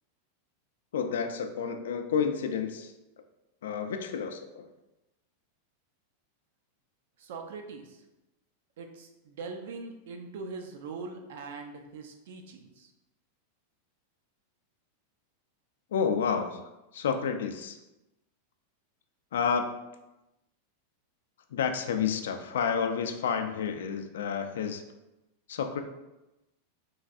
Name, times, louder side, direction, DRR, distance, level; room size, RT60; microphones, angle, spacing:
voice 1, 0.9-2.9 3.6-4.7 15.9-16.6 16.9-17.8 19.3-19.6 21.5-24.8 25.5-25.8, left 6 dB, 90° left, 7 dB, 0.3 m, -30 dB
voice 2, 7.2-8.0 8.8-12.9, right 4 dB, 70° right, 4 dB, 0.4 m, -42 dB
3.1 x 2.6 x 2.4 m, 0.97 s
supercardioid pair, 150°, 0 cm